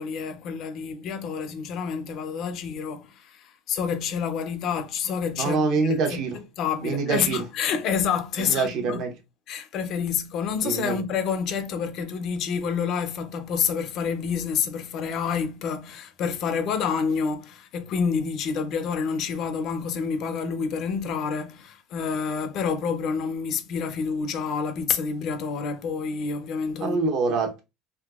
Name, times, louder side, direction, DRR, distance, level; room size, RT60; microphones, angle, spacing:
voice 1, 0.0-5.6 5.9-6.0 6.3-9.1 9.5-27.0, left 6 dB, 50° left, 0.5 m, -28 dB
voice 2, 5.4-6.4 6.8-7.4 8.4-9.1 10.6-11.0 26.8-27.6, right 4 dB, 55° right, 0.9 m, -25 dB
3.5 x 2.7 x 2.3 m
cardioid pair, 135°, 0 cm